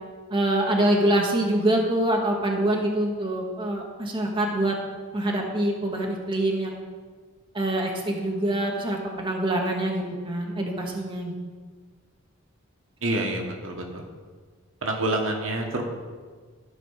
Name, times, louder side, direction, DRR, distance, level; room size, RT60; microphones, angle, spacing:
voice 1, 0.3-4.7 5.1-6.7 7.5-11.4, right 1 dB, 25° right, 0 dB, 1.2 m, -25 dB
voice 2, 13.0-14.0 14.8-15.8, right 2 dB, 70° right, 2 dB, 1.4 m, -27 dB
13.5 x 5.0 x 5.6 m, 1.5 s
head